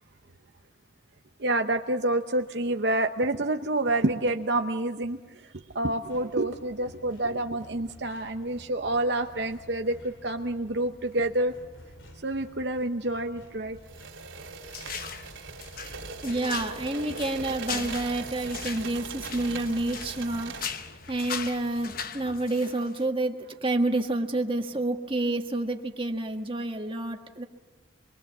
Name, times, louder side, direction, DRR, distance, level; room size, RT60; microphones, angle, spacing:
voice 1, 1.4-11.5 12.2-13.8 14.8-14.9, right 2 dB, 60° right, 6 dB, 0.8 m, -28 dB
sound 1, 6.0-22.5, equal, 90° left, 3.5 m, -52 dB
sound 2, 13.8-20.9, right 4 dB, 85° right, 3.0 m, -40 dB
sound 3, 14.7-15.3 15.6-20.2 20.5-23.0, left 7 dB, 50° left, 1.0 m, -39 dB
voice 2, 16.2-20.8 21.1-27.4, right 2 dB, 25° right, 4 dB, 1.6 m, -29 dB
25.5 x 22.5 x 7.3 m, 1.3 s
head